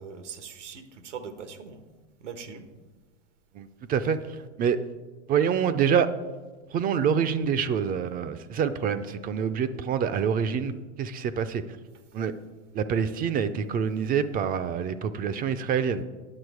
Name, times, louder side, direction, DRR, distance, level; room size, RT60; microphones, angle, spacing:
voice 1, 0.0-1.9 2.2-2.7, right 6 dB, 90° right, 9 dB, 1.1 m, -41 dB
voice 2, 3.5-4.8 5.3-6.1 6.7-11.6 12.1-12.3 12.7-16.0, right 7 dB, 25° right, 11 dB, 0.4 m, -26 dB
9.7 x 6.2 x 4.7 m, 1.3 s
hypercardioid pair, 105°, 35 cm